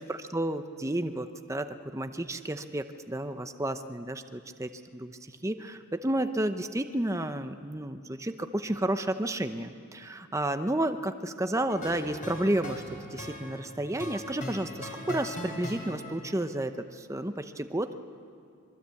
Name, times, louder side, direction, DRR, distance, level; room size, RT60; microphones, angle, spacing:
voice 1, 0.0-12.8 13.1-18.0, right 1 dB, 15° right, 8 dB, 0.7 m, -31 dB
sound 1, 11.7-16.4, left 1 dB, 35° left, 4.5 m, -40 dB
26.0 x 22.0 x 8.3 m, 2.4 s
head